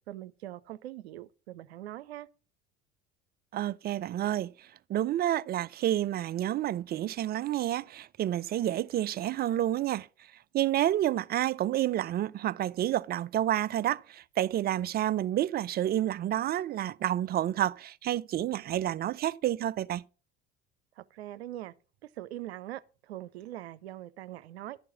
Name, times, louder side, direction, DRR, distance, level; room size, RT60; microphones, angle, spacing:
voice 1, 0.1-2.3 21.0-21.7 22.2-24.8, right 14 dB, 80° right, 0.6 m, -42 dB
voice 2, 3.5-10.1 10.5-20.0, right 12 dB, 30° right, 0.4 m, -29 dB
11.5 x 4.6 x 5.8 m
hypercardioid pair, 65°, 32 cm